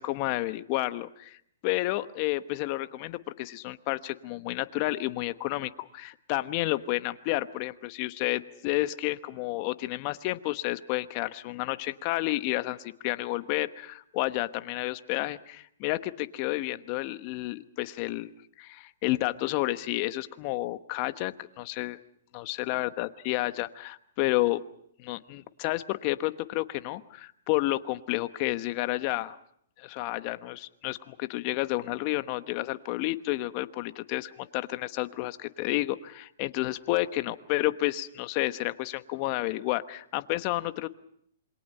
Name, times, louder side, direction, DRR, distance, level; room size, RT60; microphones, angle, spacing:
voice 1, 0.0-1.4 1.6-18.3 18.6-22.0 22.3-24.6 25.0-29.4 29.8-40.9, left 18 dB, 40° left, 12 dB, 1.1 m, -31 dB
27.5 x 23.0 x 5.5 m, 0.69 s
hypercardioid pair, 130°, 0 cm